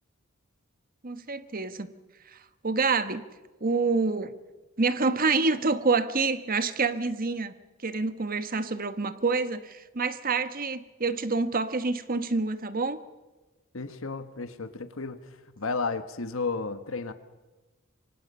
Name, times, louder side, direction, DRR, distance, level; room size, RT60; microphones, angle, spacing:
voice 1, 1.0-1.9 2.3-3.2 3.6-4.3 4.8-7.5 7.8-13.0, right 4 dB, 45° right, 11 dB, 1.4 m, -27 dB
voice 2, 13.7-15.2 15.6-17.1, left 4 dB, 80° left, 10 dB, 1.4 m, -32 dB
28.0 x 24.5 x 5.5 m, 1.2 s
head